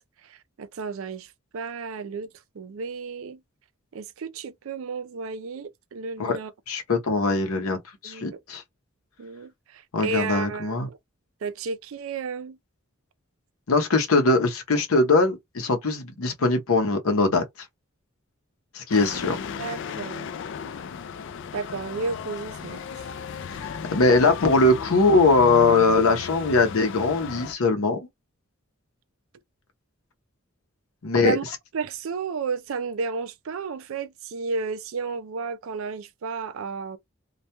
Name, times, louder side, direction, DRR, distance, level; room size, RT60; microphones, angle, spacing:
voice 1, 0.2-2.3 2.5-3.4 3.9-6.5 8.0-8.4 9.2-11.0 11.4-12.6 19.6-20.3 21.5-22.8 31.2-31.4 31.7-37.0, right 4 dB, 70° right, 0.4 m, -32 dB
voice 2, 6.7-7.8 8.0-8.6 9.9-10.9 13.7-17.4 18.7-19.4 23.5-28.0 31.0-31.4, left 3 dB, 85° left, 0.7 m, -21 dB
sound 1, 18.9-27.5, left 7 dB, 60° left, 0.3 m, -35 dB
2.3 x 2.2 x 2.8 m
head